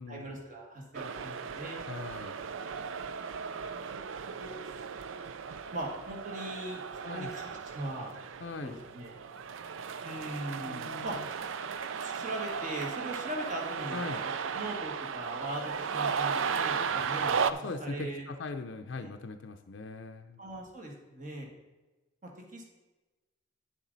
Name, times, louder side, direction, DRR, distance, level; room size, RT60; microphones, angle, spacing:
voice 1, 0.1-1.8 3.0-4.7 5.7-6.8 7.1-8.1 8.6-9.1 10.0-11.2 11.9-15.6 15.9-18.3 19.0-19.1 20.4-21.5 22.2-22.6, right 1 dB, 40° right, 0 dB, 1.7 m, -40 dB
sound 1, 0.9-17.5, right 6 dB, 70° right, 0.4 m, -35 dB
voice 2, 1.8-2.3 7.0-7.3 8.4-8.7 10.6-11.3 13.9-14.2 17.5-20.4, left 3 dB, 60° left, 6 dB, 0.5 m, -40 dB
9.5 x 7.2 x 4.0 m, 1.2 s
head